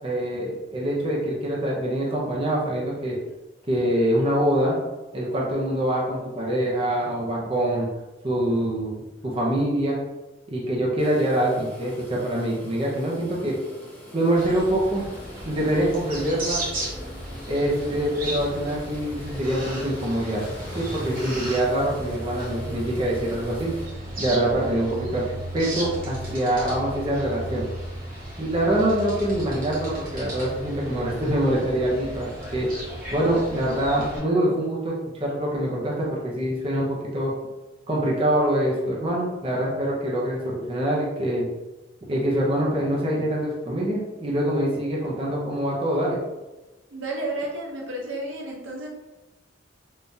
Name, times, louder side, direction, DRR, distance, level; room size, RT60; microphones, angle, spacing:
voice 1, 0.0-3.2 3.7-4.8 5.1-7.9 8.2-10.0 10.5-13.6 14.1-15.0 15.5-16.6 17.5-20.4 20.7-23.7 24.2-27.6 28.4-32.7 33.1-37.3 37.9-41.5 42.1-46.2, right 1 dB, 30° right, -4 dB, 0.7 m, -25 dB
sound 1, 11.0-23.8, left 1 dB, 10° left, 0.8 m, -45 dB
sound 2, 13.2-28.5, equal, 80° left, 1.0 m, -45 dB
sound 3, 14.4-34.2, right 1 dB, 50° right, 1.1 m, -35 dB
voice 2, 46.9-48.9, right 2 dB, 85° right, -1 dB, 0.8 m, -31 dB
3.7 x 2.4 x 2.7 m, 1.1 s
head